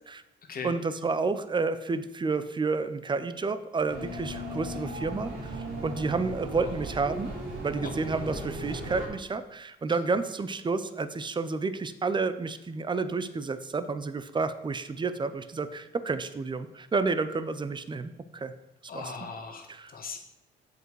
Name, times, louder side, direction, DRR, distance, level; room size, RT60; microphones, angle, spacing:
voice 1, 0.6-7.3 7.6-18.5 18.9-19.0, right 4 dB, 25° right, 12 dB, 0.6 m, -30 dB
sound 1, 3.9-9.1, right 1 dB, 80° right, 2.6 m, -37 dB
voice 2, 18.9-20.2, left 5 dB, 45° left, 4 dB, 1.5 m, -39 dB
7.6 x 5.3 x 4.7 m, 0.96 s
cardioid pair, 90°, 20 cm